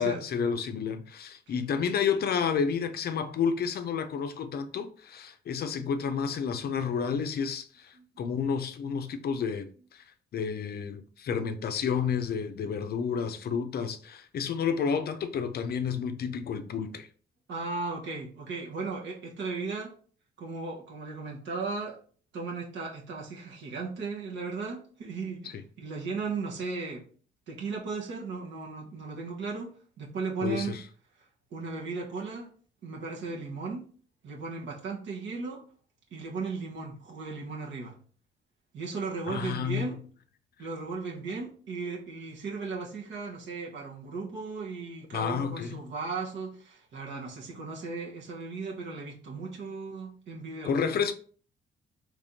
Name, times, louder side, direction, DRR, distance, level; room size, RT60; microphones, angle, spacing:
voice 1, 0.0-10.0 10.3-17.1 25.5-25.6 30.4-30.8 39.3-39.9 45.1-45.8 50.6-51.1, left 6 dB, 50° left, 0.5 m, -30 dB
voice 2, 17.5-20.0 20.4-22.0 22.3-27.1 27.5-30.8 31.5-32.5 32.8-33.8 34.2-35.6 36.1-37.9 38.7-40.0 40.6-50.8, right 4 dB, 70° right, 1.1 m, -36 dB
3.5 x 3.1 x 2.6 m
cardioid pair, 90°, 20 cm